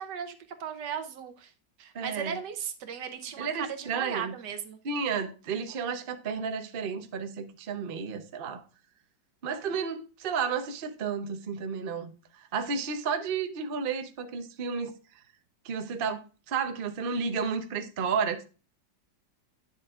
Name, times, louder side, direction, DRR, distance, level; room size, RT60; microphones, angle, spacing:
voice 1, 0.0-1.5 1.8-4.8, right 7 dB, 70° right, 1.4 m, -37 dB
voice 2, 1.9-2.4 3.4-4.3 4.8-8.6 9.4-12.1 12.5-14.9 15.6-18.4, right 5 dB, 55° right, 0.6 m, -32 dB
9.2 x 7.2 x 2.4 m
omnidirectional pair, 2.0 m